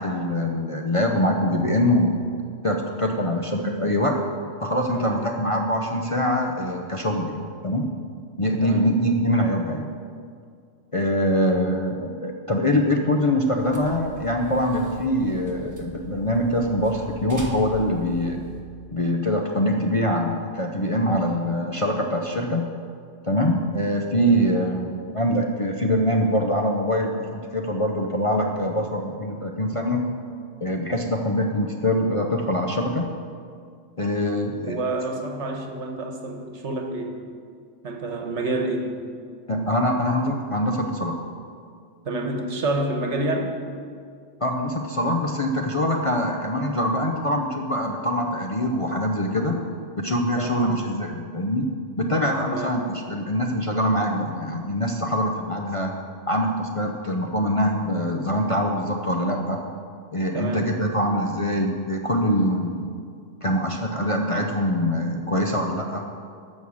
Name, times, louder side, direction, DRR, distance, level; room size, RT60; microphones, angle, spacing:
voice 1, 0.0-2.2 2.6-4.2 4.6-7.9 8.4-9.9 10.9-18.4 18.9-22.7 23.2-30.0 30.6-33.1 34.0-34.8 39.5-41.2 44.4-49.6 50.0-51.7 52.0-55.9 56.3-59.6 60.1-62.8 63.4-66.0, equal, 35° left, 1 dB, 0.6 m, -24 dB
sound 1, 13.6-18.6, right 2 dB, 15° right, 1.2 m, -42 dB
voice 2, 34.7-37.2 37.8-38.9 42.0-43.5 50.4-50.7 52.5-52.8 60.3-60.7, right 2 dB, 65° right, 4 dB, 1.4 m, -28 dB
11.0 x 6.4 x 7.1 m, 2.2 s
omnidirectional pair, 1.3 m